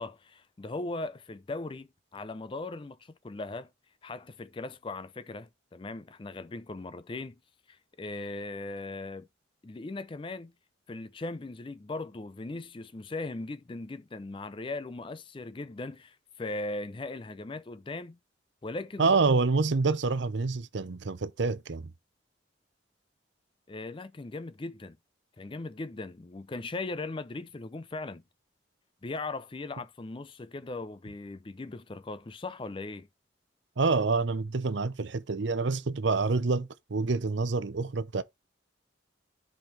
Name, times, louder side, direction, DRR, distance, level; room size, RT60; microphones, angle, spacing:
voice 1, 0.0-3.7 4.0-7.4 7.7-9.3 9.6-10.5 10.9-18.2 18.6-19.1 23.7-25.0 25.4-28.2 29.0-33.1, left 2 dB, 25° left, 0.4 m, -39 dB
voice 2, 19.0-21.9 33.8-38.2, right 4 dB, 70° right, 0.7 m, -27 dB
10.5 x 5.2 x 3.2 m
head